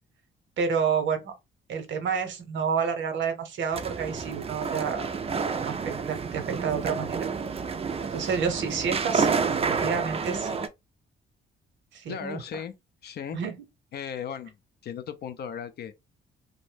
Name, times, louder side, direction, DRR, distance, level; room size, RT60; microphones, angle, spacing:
voice 1, 0.6-1.3 1.7-5.1 5.6-7.3 8.1-10.6 11.9-12.4 13.3-13.5, right 6 dB, 70° right, 0.8 m, -29 dB
sound 1, 3.7-10.7, right 5 dB, 30° right, 0.4 m, -29 dB
voice 2, 12.1-12.7 13.0-13.4 13.9-14.6 14.8-15.9, left 8 dB, 55° left, 0.4 m, -36 dB
2.6 x 2.1 x 3.2 m
cardioid pair, 90°, 20 cm